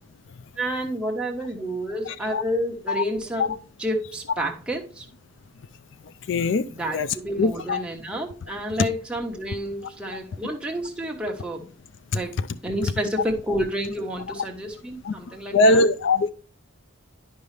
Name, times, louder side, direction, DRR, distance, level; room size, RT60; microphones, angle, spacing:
voice 1, 0.6-3.5 3.8-5.1 6.7-11.7 12.1-15.9, equal, 5° right, 1.2 m, -30 dB
voice 2, 6.3-6.6 6.9-7.1 7.4-7.8 15.0-15.1 15.5-16.3, left 2 dB, 60° left, 0.4 m, -20 dB
10.5 x 5.5 x 3.3 m
head